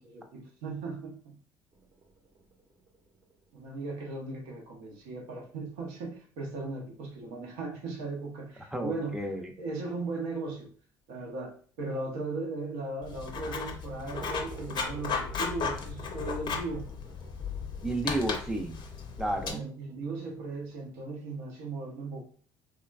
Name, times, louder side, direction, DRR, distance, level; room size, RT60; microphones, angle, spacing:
voice 1, 0.1-1.4 3.5-9.2 9.6-10.7 11.1-16.9 19.5-22.2, right 3 dB, 70° right, 0.7 m, -37 dB
sound 1, 1.7-7.6 7.9-8.0 8.4-8.5 8.8-8.9 9.3-9.4 12.2-12.3 13.7-21.1, right 4 dB, 35° right, 0.8 m, -54 dB
voice 2, 8.7-9.5 17.8-18.8 19.2-19.6, right 1 dB, 5° right, 0.6 m, -32 dB
Writing, 13.0-19.5, left 5 dB, 45° left, 0.5 m, -35 dB
3.3 x 2.2 x 2.3 m
hypercardioid pair, 60°, 11 cm